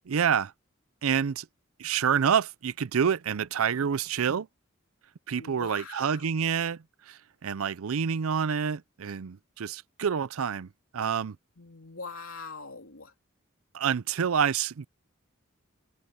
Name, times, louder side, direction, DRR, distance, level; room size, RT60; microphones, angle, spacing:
voice 1, 0.1-0.5 1.0-1.5 1.8-4.5 5.3-10.7 10.9-11.4 13.7-14.9, right 7 dB, 90° right, 0.5 m, -28 dB
voice 2, 5.4-6.3 11.6-13.1, left 4 dB, 85° left, 3.1 m, -43 dB
head